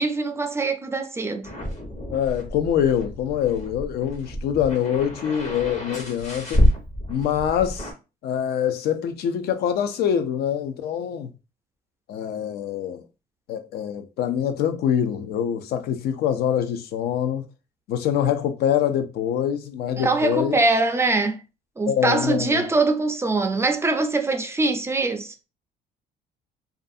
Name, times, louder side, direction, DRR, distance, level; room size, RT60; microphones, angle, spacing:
voice 1, 0.0-1.5 20.0-21.4 21.8-25.3, right 3 dB, 15° right, 0.3 m, -23 dB
sound 1, 1.4-7.9, equal, 45° left, 0.9 m, -27 dB
voice 2, 2.1-6.6 7.1-7.9 8.2-11.3 12.1-13.0 13.5-17.4 17.9-20.6 21.9-22.6, left 9 dB, 70° left, 0.5 m, -24 dB
2.5 x 2.3 x 2.5 m
cardioid pair, 110°, 17 cm